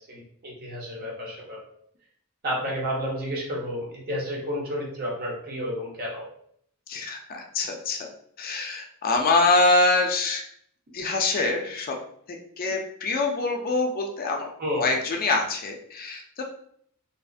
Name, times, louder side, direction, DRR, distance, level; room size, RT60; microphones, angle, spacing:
voice 1, 0.1-1.6 2.4-6.3 14.6-14.8, equal, 45° right, -2 dB, 0.9 m, -31 dB
voice 2, 6.9-8.1 8.4-10.4 10.9-11.9 12.6-14.5 14.8-16.4, left 3 dB, 45° left, 2 dB, 0.4 m, -24 dB
2.7 x 2.4 x 2.4 m, 0.65 s
head